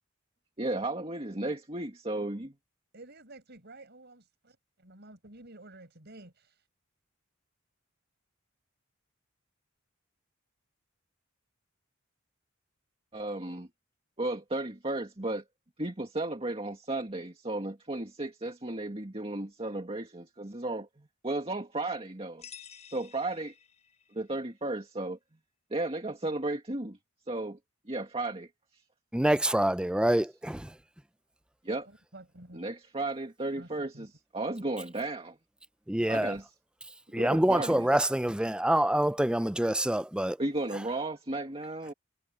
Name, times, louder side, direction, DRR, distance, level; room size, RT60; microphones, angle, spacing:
voice 1, 0.6-2.5 13.1-13.7 14.2-15.4 15.8-22.4 22.9-23.5 24.1-25.2 25.7-27.0 27.3-27.6 27.9-28.8 31.6-31.9 32.5-35.4 36.1-36.5 37.1-37.9 40.4-41.9, right 2 dB, 30° right, 2.1 m, -34 dB
voice 2, 2.9-6.7 31.9-32.6 33.6-34.1, right 2 dB, 55° right, 5.7 m, -51 dB
sound 1, 22.4-24.2, left 8 dB, 35° left, 6.4 m, -51 dB
voice 3, 29.1-30.7 35.9-36.3 37.1-40.4, right 1 dB, 5° right, 0.5 m, -26 dB
head